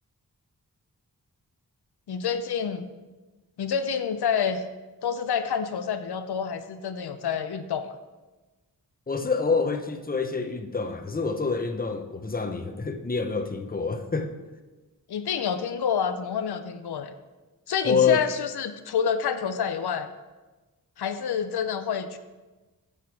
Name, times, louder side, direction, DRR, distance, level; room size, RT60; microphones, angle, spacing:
voice 1, 2.1-2.9 3.6-4.6 5.0-8.0 15.1-17.1 17.7-20.1 21.0-22.2, left 7 dB, 85° left, 9 dB, 0.6 m, -28 dB
voice 2, 9.1-14.3 17.8-18.2, left 5 dB, 25° left, 7 dB, 0.8 m, -26 dB
8.7 x 6.7 x 4.7 m, 1.2 s
wide cardioid pair, 60°, 38 cm